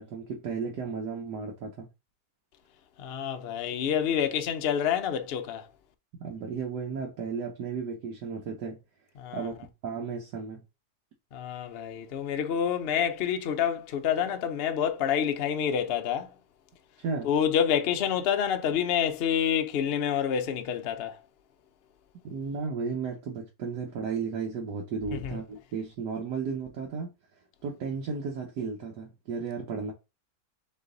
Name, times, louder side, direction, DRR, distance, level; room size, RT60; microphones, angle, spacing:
voice 1, 0.0-1.9 6.2-8.8 9.3-10.6 17.0-17.3 22.2-27.1 27.6-29.9, right 5 dB, 75° right, 1.5 m, -34 dB
voice 2, 3.0-5.7 9.2-9.5 11.3-16.3 17.2-21.2 25.1-25.4, left 8 dB, 85° left, 0.5 m, -28 dB
4.1 x 3.2 x 3.8 m
omnidirectional pair, 1.9 m